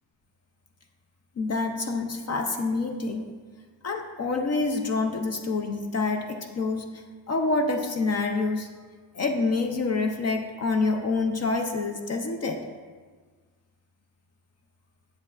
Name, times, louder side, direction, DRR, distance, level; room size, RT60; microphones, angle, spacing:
voice 1, 1.4-3.2 3.8-6.8 7.3-8.7 9.1-12.6, left 3 dB, 35° left, 5 dB, 0.5 m, -27 dB
9.8 x 7.4 x 2.4 m, 1.5 s
cardioid pair, 170°, 44 cm